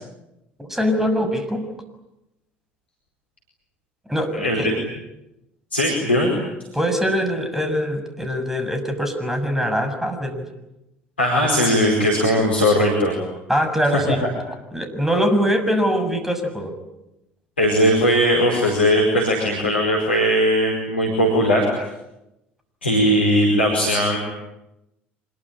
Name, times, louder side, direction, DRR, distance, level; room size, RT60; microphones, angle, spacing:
voice 1, 0.6-1.6 4.1-4.7 6.7-10.4 11.4-11.5 13.5-14.2 14.7-16.7, equal, 5° right, 8 dB, 6.7 m, -22 dB
voice 2, 5.7-6.3 11.2-13.1 13.9-14.0 17.6-21.7 22.8-24.2, equal, 90° left, -1 dB, 4.7 m, -18 dB
26.0 x 22.0 x 10.0 m, 0.92 s
figure-of-eight pair, 60°, 6 cm